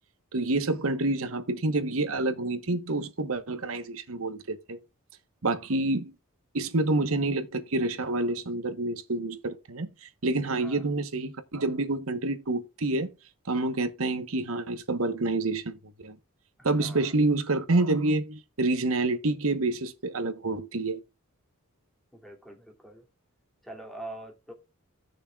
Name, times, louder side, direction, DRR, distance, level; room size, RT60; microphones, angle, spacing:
voice 1, 0.3-4.8 5.4-6.1 6.5-13.1 13.5-16.2 16.6-21.0, right 2 dB, 70° right, 1.2 m, -28 dB
voice 2, 16.6-17.1 22.1-23.0 23.6-24.5, right 1 dB, ahead, 2.6 m, -44 dB
16.5 x 6.6 x 2.4 m
head